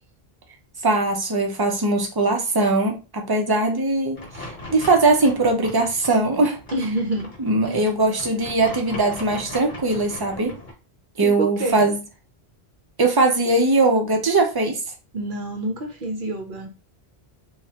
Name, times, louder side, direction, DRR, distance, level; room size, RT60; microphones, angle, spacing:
voice 1, 0.8-6.6 7.4-10.5 11.2-12.0 13.0-14.8, right 2 dB, 30° right, 3 dB, 0.5 m, -20 dB
sound 1, 4.1-10.7, left 1 dB, 50° left, 1.2 m, -39 dB
voice 2, 6.7-7.3 7.6-7.8 11.2-11.8 15.1-16.7, right 1 dB, 55° right, 3 dB, 0.8 m, -27 dB
3.1 x 2.3 x 2.8 m, 0.31 s
omnidirectional pair, 1.1 m